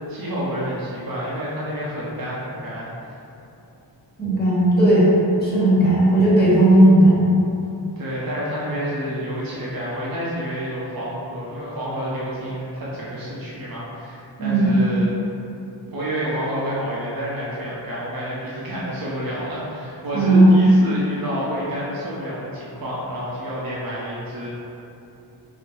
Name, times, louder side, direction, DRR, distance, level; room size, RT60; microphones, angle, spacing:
voice 1, 0.1-3.2 8.0-15.1 15.9-24.5, equal, 50° right, -7 dB, 0.8 m, -28 dB
voice 2, 4.2-5.1 5.4-7.3 14.4-14.7 20.1-20.5, right 1 dB, 20° left, -9 dB, 1.4 m, -15 dB
4.3 x 2.1 x 4.5 m, 2.8 s
wide cardioid pair, 80°, 44 cm